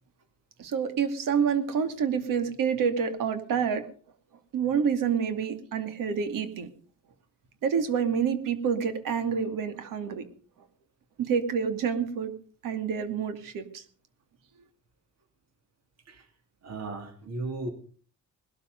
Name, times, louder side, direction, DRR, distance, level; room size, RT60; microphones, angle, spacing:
voice 1, 0.6-3.9 4.5-6.7 7.6-10.2 11.2-12.3 12.6-13.8, right 7 dB, 80° right, 9 dB, 2.5 m, -28 dB
voice 2, 16.6-17.7, right 2 dB, 50° right, 5 dB, 3.2 m, -35 dB
20.0 x 12.5 x 5.3 m, 0.43 s
cardioid pair, 130°, 32 cm